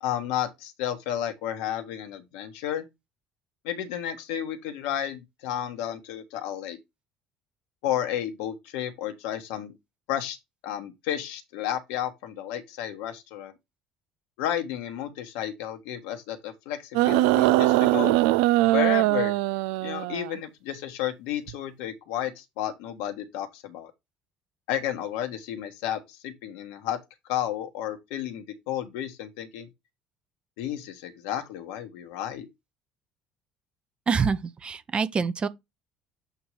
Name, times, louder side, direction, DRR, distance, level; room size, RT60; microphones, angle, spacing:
voice 1, 0.0-2.8 3.6-6.8 7.8-9.7 10.1-10.4 10.6-13.5 14.4-18.2 18.7-19.4 19.8-23.9 24.7-27.0 27.3-29.7 30.6-32.5, left 11 dB, 70° left, 1.5 m, -32 dB
sound 1, 16.9-20.4 21.5-21.6, right 17 dB, 75° right, 0.3 m, -22 dB
voice 2, 34.1-35.5, right 5 dB, 35° right, 0.9 m, -26 dB
8.1 x 2.9 x 4.8 m
hypercardioid pair, 60°, 3 cm